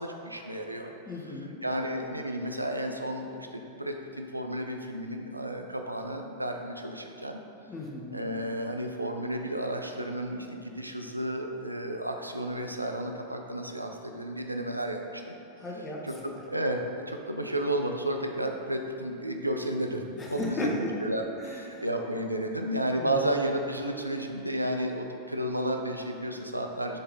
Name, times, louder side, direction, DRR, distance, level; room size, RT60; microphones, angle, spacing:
voice 1, 0.0-0.9 1.6-7.4 8.1-15.3 16.0-16.8 17.1-20.0 20.3-27.0, right 1 dB, 85° right, 3 dB, 0.4 m, -32 dB
voice 2, 1.1-1.6 7.7-8.2 15.6-16.0 16.3-16.4 20.2-20.9 21.4-21.9 23.0-23.2, left 1 dB, 20° left, -1 dB, 1.0 m, -35 dB
6.5 x 4.2 x 3.9 m, 2.7 s
figure-of-eight pair, 90°, 0 cm